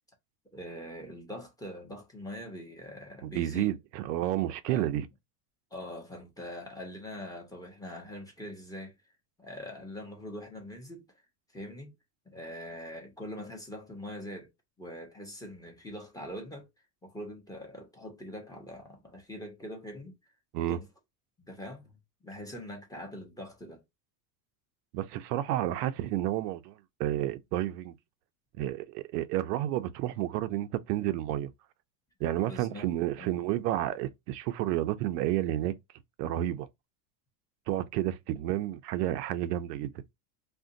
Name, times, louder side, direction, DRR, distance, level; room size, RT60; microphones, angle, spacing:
voice 1, 0.5-3.7 4.7-4.9 5.7-8.9 9.4-11.1 11.5-11.9 12.3-14.5 14.8-16.7 17.0-20.1 20.7-20.9 21.4-22.0 22.2-23.8 32.4-32.9 33.2-33.5, left 1 dB, 10° left, 0.8 m, -43 dB
voice 2, 3.2-5.1 20.5-20.8 24.9-27.9 28.6-31.5 32.2-35.7 36.2-36.7 37.7-39.9, right 13 dB, 90° right, 0.6 m, -31 dB
2.5 x 2.2 x 3.7 m
supercardioid pair, 135°, 47 cm